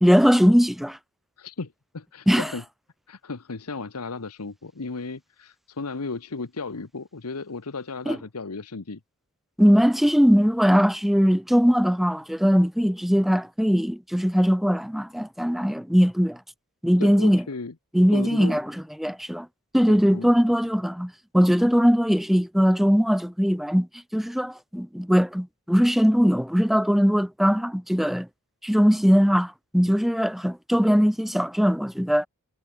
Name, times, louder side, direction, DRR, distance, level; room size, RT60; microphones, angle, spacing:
voice 1, 0.0-1.0 2.3-2.5 8.1-8.2 9.6-16.4 16.8-17.4 17.9-18.6 19.0-19.5 19.7-23.9 24.1-28.3 28.6-32.3, equal, ahead, 0.7 m, -20 dB
voice 2, 1.4-2.6 3.1-9.0 17.0-17.7 18.1-18.6 19.9-20.3, left 3 dB, 90° left, 1.1 m, -35 dB
head